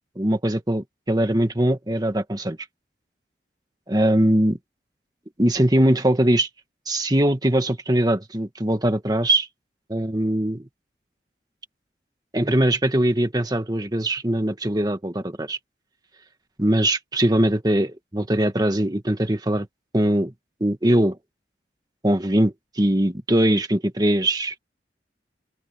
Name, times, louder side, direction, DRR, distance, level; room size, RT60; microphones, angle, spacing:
voice 1, 0.1-2.6 3.9-4.6 5.4-6.5 6.9-9.5 9.9-10.7 12.3-15.6 16.6-19.7 19.9-20.3 20.6-21.2 22.0-24.6, right 1 dB, 20° right, 1.7 m, -21 dB
open air
head